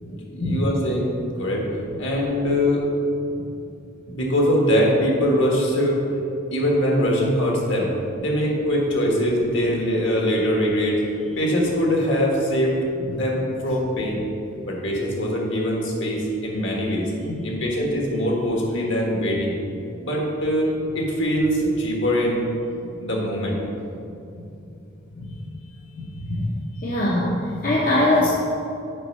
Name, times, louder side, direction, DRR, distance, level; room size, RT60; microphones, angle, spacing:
voice 1, 0.1-1.7 2.0-2.8 4.1-6.0 6.5-7.9 8.2-11.0 11.3-12.8 13.1-14.2 14.6-17.1 17.4-19.5 20.0-20.7 20.9-22.5 23.0-23.6, equal, 60° left, -2 dB, 1.5 m, -22 dB
voice 2, 26.0-26.5 26.8-28.3, left 1 dB, 45° left, -5 dB, 0.8 m, -22 dB
6.7 x 5.3 x 5.4 m, 2.8 s
head